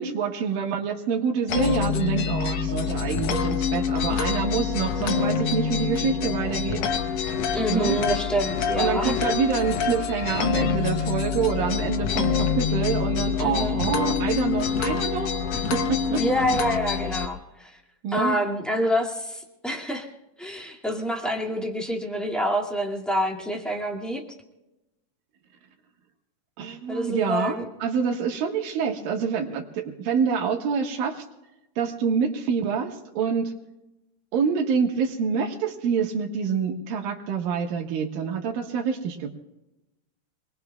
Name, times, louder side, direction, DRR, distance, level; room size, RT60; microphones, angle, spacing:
voice 1, 0.0-6.8 7.7-8.0 8.8-16.2 18.0-18.4 26.6-31.2 31.8-33.5 34.3-39.3, right 6 dB, 75° right, 2 dB, 3.2 m, -26 dB
sound 1, 1.5-17.3, left 7 dB, 70° left, 1.7 m, -26 dB
voice 2, 7.5-9.3 13.4-13.8 16.1-17.8 18.1-20.1 20.4-24.2 26.9-27.6, equal, ahead, -1 dB, 1.0 m, -27 dB
27.0 x 21.0 x 2.3 m, 0.97 s
omnidirectional pair, 4.1 m